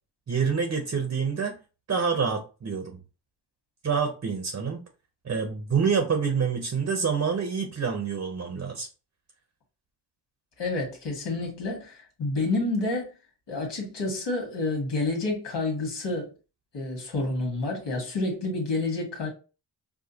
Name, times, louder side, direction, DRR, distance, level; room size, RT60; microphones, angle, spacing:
voice 1, 0.3-1.6 1.9-3.0 3.8-4.8 5.2-8.9, right 6 dB, 35° right, 0.8 m, -27 dB
voice 2, 10.6-13.1 13.5-16.3 16.7-19.3, left 2 dB, 75° left, 1.7 m, -29 dB
4.8 x 2.3 x 2.8 m
cardioid pair, 75°, 42 cm